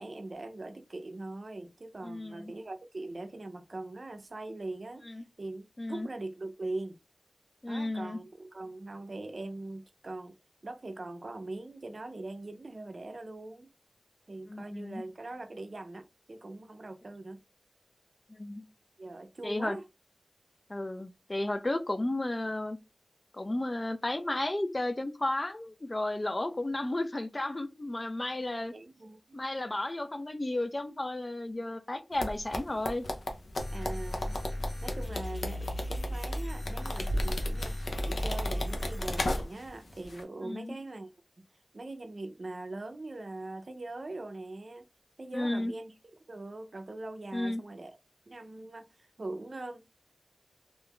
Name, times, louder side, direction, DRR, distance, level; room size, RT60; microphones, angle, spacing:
voice 1, 0.0-7.0 7.7-10.4 10.6-13.7 14.3-17.4 19.0-19.8 28.7-29.4 33.7-34.4 34.8-37.8 38.1-41.1 41.4-41.5 41.7-44.8 45.2-48.0 48.3-49.8, right 2 dB, 60° right, 0.5 m, -42 dB
voice 2, 2.0-2.5 5.1-5.2 5.8-6.1 7.6-8.2 14.5-15.0 18.4-18.6 19.4-19.8 20.7-22.8 23.3-28.7 29.3-33.0 40.4-40.8 45.3-45.7 47.3-47.6, left 1 dB, 35° left, 0.4 m, -33 dB
sound 1, 32.2-39.7 40.0-40.2, left 1 dB, 90° left, 0.5 m, -34 dB
sound 2, 33.6-39.4, equal, 60° left, 1.0 m, -36 dB
2.5 x 2.2 x 3.4 m
wide cardioid pair, 50°, 0 cm